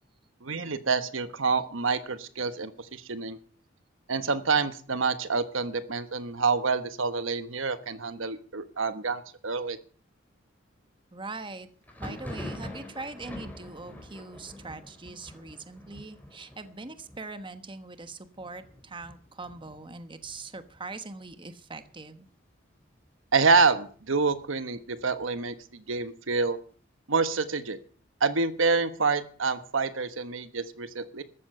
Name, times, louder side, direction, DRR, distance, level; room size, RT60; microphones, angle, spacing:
voice 1, 0.4-3.4 4.1-9.8 23.3-26.6 27.1-27.8 28.2-31.2, right 4 dB, 75° right, 11 dB, 1.2 m, -27 dB
voice 2, 11.1-11.7 12.0-22.3, right 3 dB, 25° right, 10 dB, 1.3 m, -42 dB
Thunder, 11.8-21.3 21.6-22.3 22.5-23.5 23.9-25.6, left 1 dB, 10° left, 4.0 m, -45 dB
14.0 x 12.5 x 6.8 m, 0.43 s
head